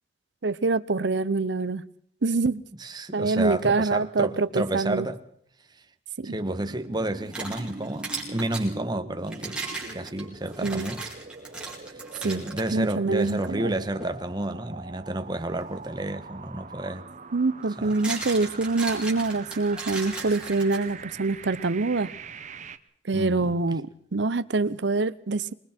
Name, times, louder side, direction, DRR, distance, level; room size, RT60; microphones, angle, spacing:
voice 1, 0.4-1.8 2.2-2.6 3.1-5.1 6.2-6.4 10.6-10.9 12.2-12.4 12.7-13.8 17.3-22.1 23.1-25.5, right 3 dB, 70° right, 0.8 m, -25 dB
voice 2, 2.8-5.2 6.2-9.6 9.9-11.1 12.1-17.0 17.8-18.0 23.1-23.6, right 1 dB, 25° right, 1.3 m, -30 dB
sound 1, 6.2-22.8, right 4 dB, 40° right, 1.0 m, -43 dB
sound 2, 7.0-8.7 9.3-12.7 13.2-13.3 14.0-14.2 16.3-16.4 17.6-21.1, right 3 dB, 5° right, 5.5 m, -37 dB
26.5 x 21.5 x 4.5 m
head